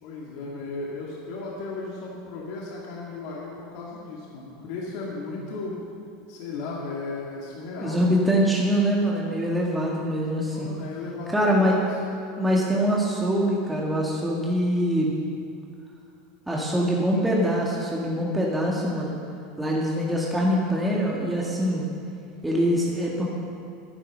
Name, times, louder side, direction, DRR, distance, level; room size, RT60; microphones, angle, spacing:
voice 1, 0.0-5.8 6.3-8.0 10.4-12.0 16.6-16.8, left 3 dB, 60° left, -4 dB, 2.4 m, -36 dB
voice 2, 7.8-10.8 11.3-11.7 12.4-15.1 16.5-19.2 19.6-21.9 22.4-23.3, equal, 10° right, -3 dB, 1.8 m, -24 dB
11.0 x 10.0 x 6.4 m, 2.4 s
supercardioid pair, 110°, 0 cm